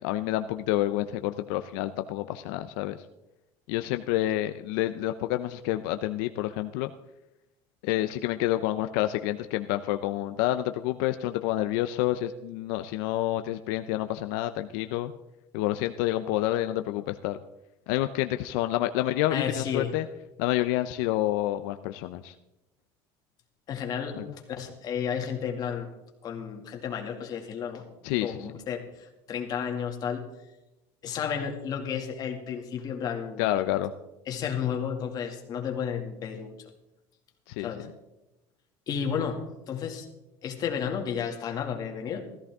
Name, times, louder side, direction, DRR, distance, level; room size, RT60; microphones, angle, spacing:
voice 1, 0.0-3.0 3.7-6.9 7.8-15.1 15.5-17.4 17.9-20.1 20.4-22.3 24.2-24.3 28.0-28.5 33.4-33.9 37.5-37.7, left 14 dB, 85° left, 9 dB, 0.6 m, -28 dB
voice 2, 19.3-19.9 23.7-25.9 26.2-27.8 28.1-30.2 31.0-33.5 34.3-36.5 37.6-37.9 38.9-40.1 40.4-42.2, left 7 dB, 40° left, 2 dB, 2.2 m, -32 dB
16.0 x 14.0 x 3.6 m, 0.94 s
cardioid pair, 145°, 10 cm